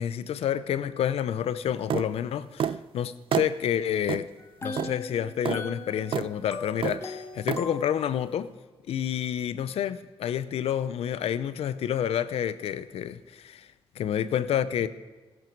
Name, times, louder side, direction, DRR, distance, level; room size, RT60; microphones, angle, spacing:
voice 1, 0.0-4.3 4.6-8.5 8.9-13.7 14.0-14.9, left 9 dB, 85° left, 0.6 m, -29 dB
sound 1, 1.9-2.1 2.6-2.8 3.3-3.5 4.1-4.2 4.8-4.9 5.5-5.6 6.1-6.3 6.8-7.0 7.5-7.6, right 8 dB, 60° right, 0.4 m, -28 dB
sound 2, 4.4-8.4, left 3 dB, 25° left, 1.4 m, -39 dB
15.5 x 12.0 x 4.6 m
cardioid pair, 105°, 10 cm